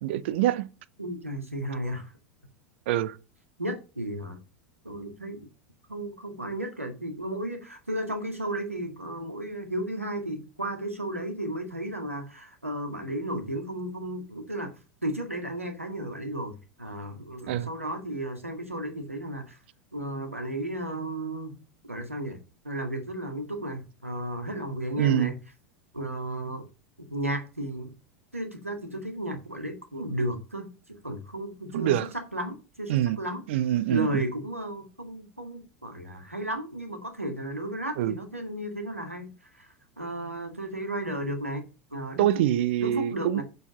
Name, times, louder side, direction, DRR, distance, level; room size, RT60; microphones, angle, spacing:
voice 1, 0.0-0.7 2.9-3.2 17.5-17.7 25.0-25.3 31.7-32.1 32.9-33.2 33.5-34.2 38.0-38.1 42.2-43.4, right 12 dB, 55° right, 0.7 m, -25 dB
voice 2, 1.0-2.1 3.6-4.4 4.8-5.5 5.9-14.7 15.0-19.6 19.9-21.6 21.9-22.4 22.6-25.4 25.9-26.6 27.0-27.9 28.3-32.0 32.3-33.4 33.9-41.6 41.9-42.3 42.8-43.4, right 1 dB, 90° right, 2.0 m, -34 dB
7.1 x 6.7 x 5.6 m
figure-of-eight pair, 85°, 7 cm